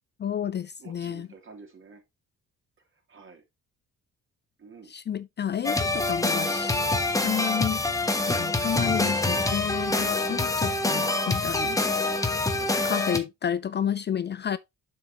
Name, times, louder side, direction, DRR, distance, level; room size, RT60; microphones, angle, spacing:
voice 1, 0.2-1.3 4.9-6.8 7.2-7.8 8.3-11.8 12.8-14.6, left 9 dB, 35° left, 0.4 m, -30 dB
voice 2, 0.8-2.0 3.1-3.4 4.6-4.9 11.8-11.9 12.5-12.7, right 4 dB, 45° right, 3.0 m, -48 dB
sound 1, 5.6-13.2, left 2 dB, 10° left, 1.2 m, -26 dB
7.5 x 5.9 x 2.9 m
cardioid pair, 90°, 30 cm